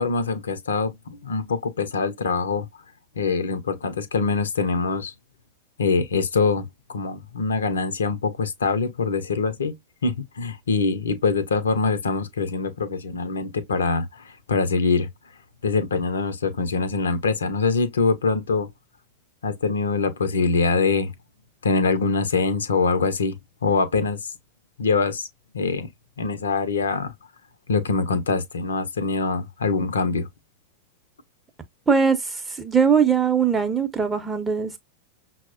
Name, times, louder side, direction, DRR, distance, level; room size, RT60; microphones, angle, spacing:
voice 1, 0.0-2.7 3.2-5.1 5.8-9.8 10.0-15.1 15.6-18.7 19.4-21.1 21.6-24.2 24.8-25.3 25.5-25.9 26.2-27.1 27.7-30.3, left 4 dB, 70° left, 0.5 m, -24 dB
voice 2, 31.9-34.8, right 6 dB, 10° right, 0.7 m, -21 dB
5.8 x 2.1 x 2.5 m
figure-of-eight pair, 90°, 0 cm